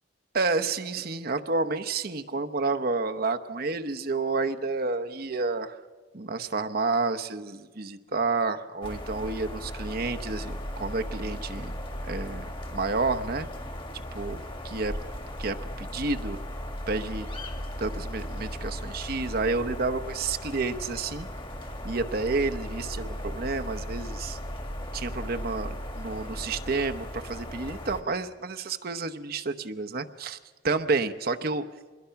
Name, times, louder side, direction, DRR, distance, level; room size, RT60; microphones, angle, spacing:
voice 1, 0.3-5.8 6.1-11.7 12.0-12.5 12.7-13.5 14.1-14.9 15.4-16.4 16.9-17.3 17.8-21.3 21.8-24.4 24.9-30.4 30.6-31.6, right 3 dB, 55° right, 7 dB, 0.9 m, -30 dB
sound 1, 8.8-28.0, equal, 30° left, 2.0 m, -37 dB
26.0 x 21.5 x 5.8 m, 1.4 s
head